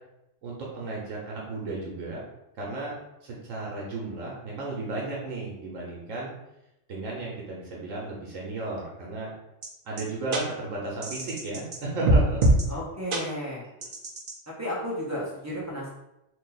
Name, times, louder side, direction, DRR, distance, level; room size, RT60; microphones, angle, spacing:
voice 1, 0.4-2.2 2.6-6.3 6.9-9.3 9.8-12.4 13.8-13.9, right 2 dB, 80° right, -3 dB, 1.2 m, -34 dB
sound 1, 9.6-9.7 10.0-10.1 10.3-10.4 11.0-11.8 12.1-12.6 13.1-13.2 13.8-14.3, right 1 dB, 55° right, 0.7 m, -22 dB
voice 2, 12.7-13.6 14.5-15.9, equal, 15° right, -5 dB, 0.7 m, -33 dB
2.8 x 2.7 x 3.8 m, 0.88 s
omnidirectional pair, 1.3 m